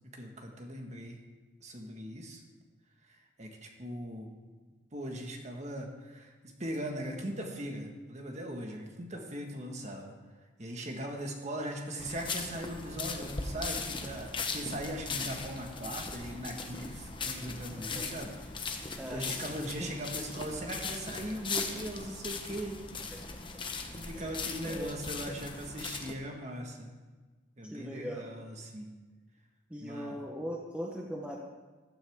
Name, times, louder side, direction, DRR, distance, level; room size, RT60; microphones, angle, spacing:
voice 1, 0.1-1.2 1.6-2.4 3.1-4.3 4.9-6.3 6.6-10.1 10.6-23.1 23.7-26.9 27.6-28.9 29.8-30.2, right 1 dB, 35° right, 2 dB, 1.7 m, -40 dB
sound 1, 12.0-26.1, left 4 dB, 25° left, 1.1 m, -39 dB
voice 2, 17.8-18.1 19.0-19.5 19.8-19.9 24.1-24.4 24.6-25.0 27.6-28.2 29.7-31.4, equal, 5° right, -2 dB, 1.1 m, -40 dB
15.0 x 12.5 x 3.7 m, 1.3 s
head